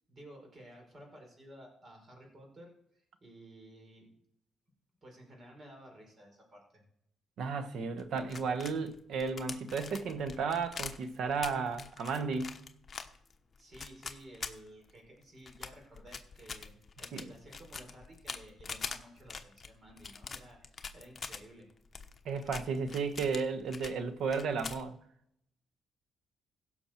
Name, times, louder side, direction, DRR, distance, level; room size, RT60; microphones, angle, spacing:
voice 1, 0.1-4.1 5.0-6.8 13.6-16.7 17.0-21.7, right 1 dB, 40° right, 4.8 m, -54 dB
voice 2, 7.4-12.5 17.1-17.3 22.2-25.0, right 5 dB, 70° right, 1.1 m, -34 dB
sound 1, 8.0-15.1 15.5-21.4 21.9-24.0 24.2-24.9, left 5 dB, 35° left, 1.1 m, -44 dB
16.5 x 6.3 x 4.4 m
cardioid pair, 90°, 0 cm